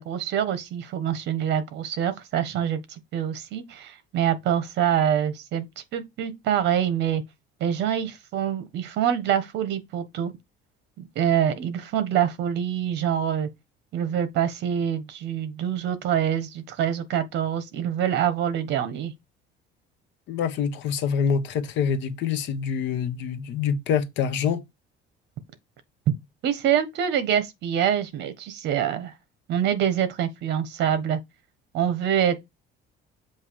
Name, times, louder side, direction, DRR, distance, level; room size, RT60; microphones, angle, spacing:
voice 1, 0.0-2.8 3.1-5.7 5.9-7.2 7.6-10.3 11.0-13.5 13.9-19.1 26.4-29.1 29.5-31.2 31.7-32.4, right 9 dB, 60° right, 1.3 m, -25 dB
voice 2, 20.3-24.6, left 7 dB, 60° left, 1.0 m, -26 dB
7.4 x 2.9 x 4.7 m
cardioid pair, 160°, 21 cm